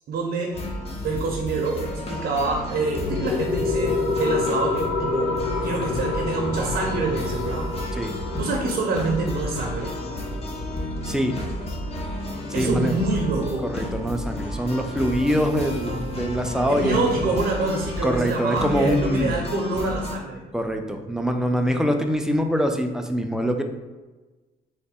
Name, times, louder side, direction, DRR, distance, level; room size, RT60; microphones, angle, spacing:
voice 1, 0.1-0.7 1.0-5.3 5.6-7.7 8.3-9.9 12.5-13.7 16.7-20.4, right 3 dB, 65° right, 1 dB, 0.6 m, -26 dB
sound 1, 0.5-20.2, left 1 dB, 35° left, 0.7 m, -32 dB
sound 2, 2.3-13.3, left 4 dB, 80° left, 0.5 m, -29 dB
voice 2, 11.0-11.3 12.5-13.0 13.7-17.2 18.0-19.3 20.5-23.6, equal, 5° right, 4 dB, 0.4 m, -24 dB
3.2 x 2.1 x 4.2 m, 1.2 s
cardioid pair, 85°, 18 cm